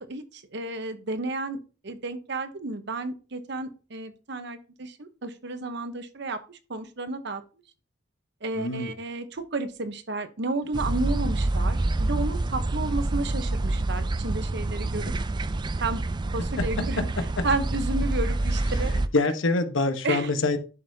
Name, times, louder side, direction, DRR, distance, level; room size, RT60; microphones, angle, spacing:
voice 1, 0.0-7.4 8.4-15.1 15.8-16.0 16.3-18.9 20.0-20.3, right 2 dB, 60° right, 9 dB, 1.0 m, -32 dB
voice 2, 8.5-8.9 19.1-20.6, left 3 dB, 85° left, 7 dB, 1.1 m, -24 dB
sound 1, 10.7-19.1, right 2 dB, 25° right, 0.4 m, -27 dB
11.0 x 5.4 x 2.8 m, 0.34 s
head